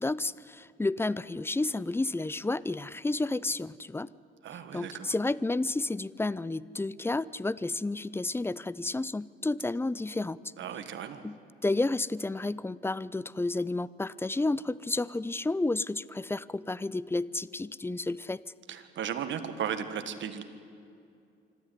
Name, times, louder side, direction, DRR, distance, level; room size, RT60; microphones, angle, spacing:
voice 1, 0.0-4.1 4.7-10.4 11.2-18.4, left 2 dB, 10° left, 20 dB, 0.5 m, -31 dB
voice 2, 4.4-5.1 10.6-11.2 18.7-20.4, right 8 dB, 70° right, 9 dB, 1.8 m, -35 dB
25.5 x 13.0 x 9.8 m, 2.5 s
cardioid pair, 90°, 20 cm